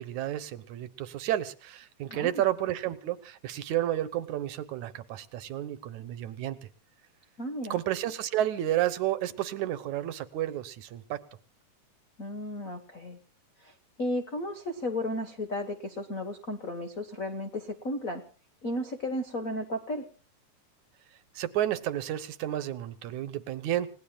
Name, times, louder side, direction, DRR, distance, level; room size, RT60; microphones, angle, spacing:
voice 1, 0.0-6.6 7.7-11.2 21.4-23.9, right 12 dB, 70° right, 12 dB, 2.2 m, -31 dB
voice 2, 2.1-2.4 7.4-7.7 12.2-13.2 13.6-18.2 18.6-20.1, left 1 dB, 60° left, 6 dB, 0.8 m, -34 dB
30.0 x 18.0 x 2.4 m, 0.37 s
omnidirectional pair, 3.8 m